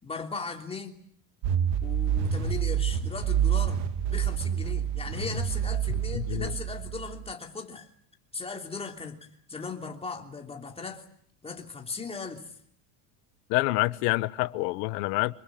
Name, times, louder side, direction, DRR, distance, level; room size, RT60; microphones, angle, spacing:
voice 1, 0.0-1.0 1.8-3.8 4.1-7.9 8.3-11.0 11.4-12.5, left 4 dB, 15° left, 3 dB, 3.1 m, -38 dB
sound 1, 1.4-7.3, right 9 dB, 70° right, 2.7 m, -28 dB
voice 2, 6.1-6.5 13.5-15.3, left 21 dB, 85° left, 15 dB, 1.2 m, -27 dB
26.0 x 22.5 x 8.7 m, 0.65 s
cardioid pair, 150°, 46 cm